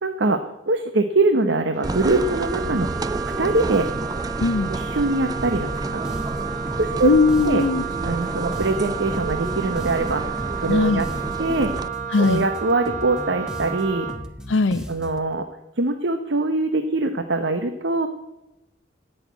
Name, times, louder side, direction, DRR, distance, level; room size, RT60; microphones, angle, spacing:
voice 1, 0.0-2.9 3.4-3.9 4.7-6.0 6.8-7.1 7.4-7.6 8.0-11.1 11.4-11.7 12.2-14.1 14.9-15.4 15.8-18.1, right 2 dB, 70° right, 8 dB, 0.9 m, -23 dB
Wind instrument woodwind instrument, 1.7-14.2, right 8 dB, 40° right, 1.0 m, -32 dB
sound 1, 1.8-11.9, right 2 dB, 20° right, 0.4 m, -30 dB
voice 2, 4.4-4.7 7.0-7.8 10.7-11.0 12.1-12.4 14.5-14.8, left 3 dB, 80° left, 7 dB, 0.5 m, -19 dB
sound 2, 5.4-15.3, equal, 5° right, 1.1 m, -37 dB
17.5 x 6.6 x 9.3 m, 0.94 s
head